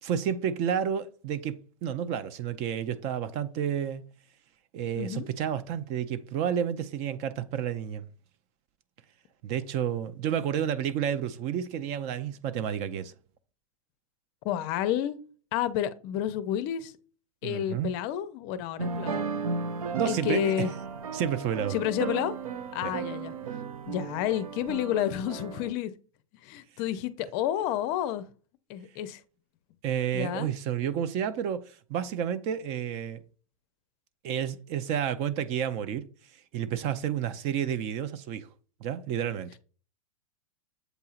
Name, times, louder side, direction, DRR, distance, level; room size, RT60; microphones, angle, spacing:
voice 1, 0.0-4.0 4.7-8.1 9.4-13.1 17.4-17.9 19.9-20.7 21.1-21.7 22.8-22.9 29.8-33.2 34.2-36.0 36.5-38.5 38.8-39.6, right 9 dB, 40° right, 0.5 m, -30 dB
voice 2, 4.9-5.3 14.4-15.2 15.5-16.9 17.4-19.2 20.0-20.7 21.7-22.3 22.7-23.3 23.9-25.9 26.4-28.3 28.7-29.2 30.1-30.5, left 11 dB, 45° left, 0.5 m, -30 dB
sound 1, 18.8-25.7, right 5 dB, 85° right, 0.6 m, -35 dB
7.9 x 2.8 x 2.4 m
hypercardioid pair, 110°, 18 cm